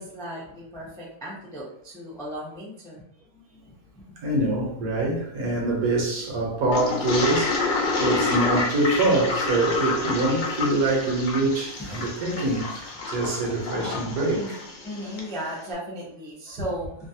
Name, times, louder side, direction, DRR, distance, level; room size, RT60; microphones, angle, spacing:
voice 1, 0.0-3.0 3.9-4.2 11.8-12.1 14.0-14.6 14.8-17.1, equal, 5° left, 0.4 m, -36 dB
voice 2, 4.2-14.6, right 2 dB, 75° right, 1.3 m, -25 dB
Toilet flush, 6.7-15.3, left 3 dB, 75° left, 0.4 m, -28 dB
3.1 x 2.3 x 2.7 m
omnidirectional pair, 1.6 m